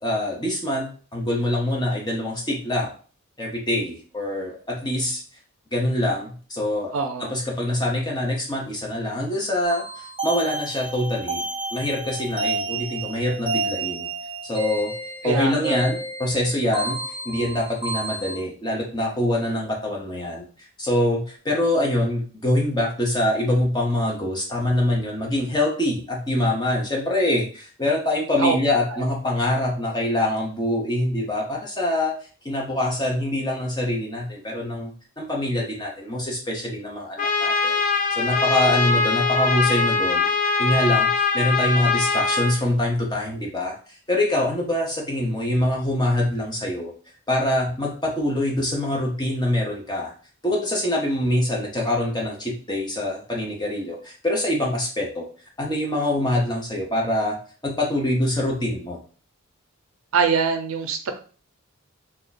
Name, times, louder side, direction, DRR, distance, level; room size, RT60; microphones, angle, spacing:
voice 1, 0.0-2.9 3.4-5.2 5.7-6.9 7.2-11.4 11.7-14.1 14.4-14.9 15.2-20.4 20.8-32.1 32.4-37.7 38.1-40.3 40.6-43.7 44.1-46.9 47.3-50.1 50.4-55.3 55.6-57.4 57.6-59.0, left 1 dB, 20° left, -2 dB, 0.8 m, -24 dB
voice 2, 6.9-7.3 15.2-15.8 28.4-28.5 28.9-29.0 60.1-61.1, right 5 dB, 70° right, 6 dB, 0.5 m, -23 dB
sound 1, 9.6-18.4, right 3 dB, 25° right, 0.6 m, -30 dB
Trumpet, 37.2-42.6, left 4 dB, 35° left, 0.4 m, -22 dB
2.9 x 2.3 x 4.0 m, 0.40 s
head